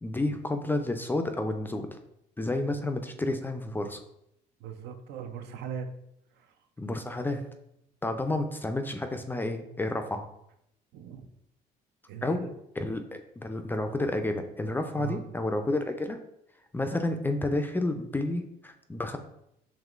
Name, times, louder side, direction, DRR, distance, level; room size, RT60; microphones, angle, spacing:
voice 1, 0.0-2.0 2.4-4.0 6.8-7.4 8.0-10.3 12.2-12.5 12.8-16.2 16.7-19.2, left 2 dB, 10° left, 6 dB, 0.3 m, -30 dB
voice 2, 4.6-5.9 6.4-6.5 10.9-11.3 12.1-12.5 14.9-15.2, right 8 dB, 75° right, 7 dB, 0.5 m, -39 dB
5.4 x 3.1 x 2.4 m, 0.78 s
cardioid pair, 110°, 17 cm